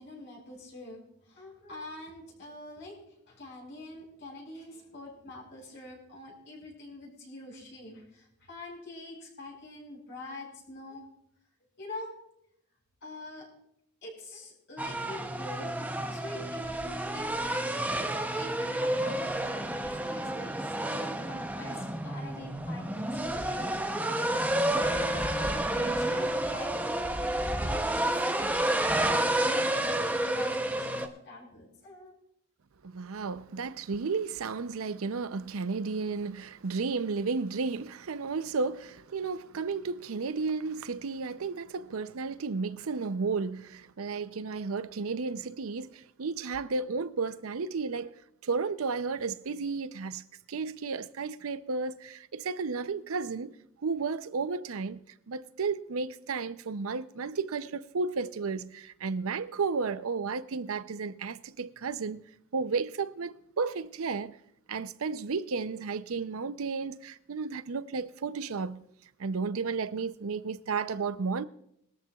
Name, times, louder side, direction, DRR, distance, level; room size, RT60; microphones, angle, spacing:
voice 1, 0.0-11.1 11.8-12.2 13.0-13.5 14.0-15.7 16.1-18.0 18.3-28.5 28.8-32.1, left 2 dB, 55° left, 5.6 m, -45 dB
sound 1, 14.8-31.1, right 1 dB, 10° right, 0.7 m, -30 dB
voice 2, 32.8-48.2 48.4-50.2 50.5-53.5 53.8-55.0 55.3-62.2 62.5-64.4 64.7-68.8 69.2-71.5, right 4 dB, 70° right, 0.6 m, -33 dB
20.5 x 13.5 x 2.3 m
head